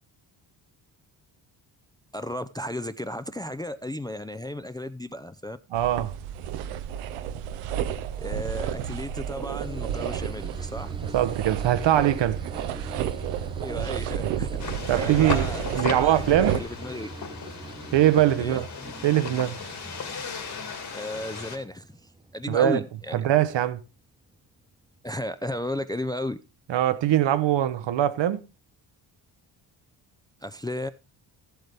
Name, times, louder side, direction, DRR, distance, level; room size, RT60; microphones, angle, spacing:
voice 1, 2.1-5.6 8.2-10.9 13.6-14.5 14.9-17.1 18.4-18.6 20.9-21.9 22.3-23.3 25.0-26.4 30.4-30.9, left 1 dB, 10° left, 0.4 m, -34 dB
voice 2, 5.7-6.1 11.1-12.4 14.9-16.6 17.9-18.7 19.0-19.6 22.5-22.8 23.1-23.8 26.7-28.4, right 12 dB, 60° right, 0.8 m, -22 dB
sound 1, 5.7-16.6, right 10 dB, 90° right, 0.8 m, -31 dB
sound 2, 9.6-22.9 23.2-23.9, right 2 dB, 10° right, 1.0 m, -42 dB
sound 3, 14.6-21.6, left 5 dB, 50° left, 2.4 m, -36 dB
13.0 x 8.0 x 3.4 m
supercardioid pair, 55°, 49 cm